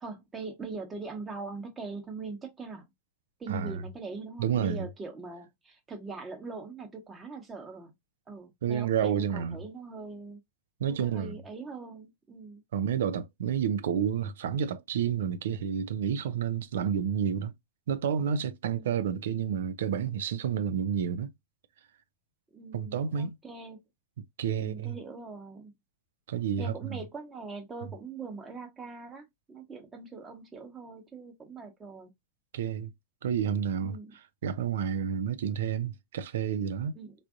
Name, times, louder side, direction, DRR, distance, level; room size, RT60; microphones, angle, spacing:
voice 1, 0.0-2.8 3.4-7.9 8.3-10.4 10.9-12.6 18.7-18.9 22.5-23.8 24.5-25.7 26.6-32.1 33.8-34.1 36.9-37.1, right 4 dB, 15° right, 0.9 m, -42 dB
voice 2, 3.5-3.8 4.4-4.9 8.6-9.6 10.8-11.3 12.7-17.5 17.9-21.3 22.7-23.4 24.4-25.0 26.3-27.0 32.5-32.9 33.2-34.0 34.4-37.0, right 8 dB, 60° right, 0.3 m, -30 dB
3.4 x 2.5 x 2.4 m
figure-of-eight pair, 90°, 0 cm